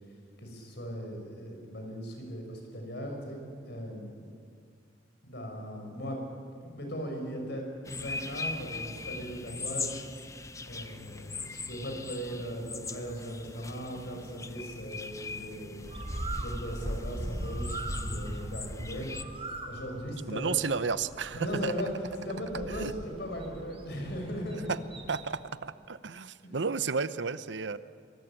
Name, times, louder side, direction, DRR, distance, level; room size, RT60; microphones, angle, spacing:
voice 1, 0.4-4.2 5.2-6.2 6.6-10.1 10.7-15.9 16.4-19.1 19.7-20.5 21.4-21.9 22.2-24.7 26.4-26.6, equal, 65° left, 3 dB, 6.4 m, -38 dB
sound 1, 7.8-19.2, left 3 dB, 20° left, 1.0 m, -41 dB
Bird, 15.8-25.4, right 1 dB, 30° right, 2.9 m, -39 dB
voice 2, 20.3-21.7 22.7-22.9 24.7-24.8 25.1-27.8, right 5 dB, 80° right, 14 dB, 0.8 m, -32 dB
24.0 x 23.5 x 9.1 m, 2.2 s
head